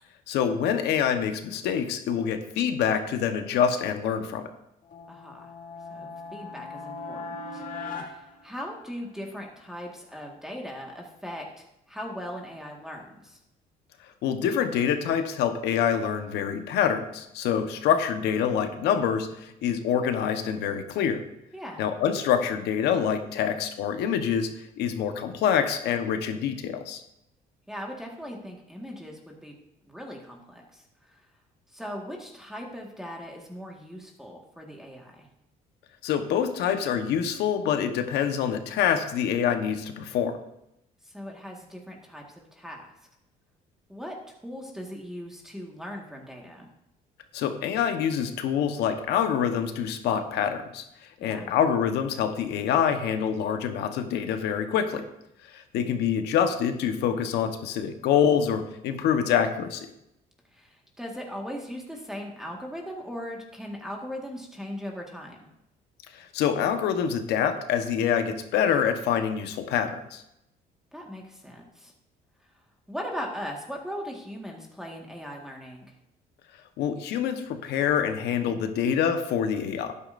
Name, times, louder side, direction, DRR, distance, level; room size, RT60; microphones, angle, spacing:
voice 1, 0.3-4.5 14.2-21.2 21.8-27.0 36.0-40.4 47.3-55.0 55.4-59.9 66.1-70.2 76.8-79.9, left 8 dB, 80° left, 7 dB, 1.2 m, -26 dB
sound 1, 4.8-9.2, left 3 dB, 55° left, 1.9 m, -39 dB
voice 2, 5.1-5.5 5.9-13.4 21.5-21.8 27.7-29.5 29.9-31.3 31.7-35.3 41.0-42.9 43.9-46.7 51.2-51.5 60.5-65.5 70.9-71.9 72.9-75.9, equal, 5° right, 0 dB, 1.7 m, -39 dB
12.0 x 9.8 x 2.6 m, 0.84 s
cardioid pair, 110°, 17 cm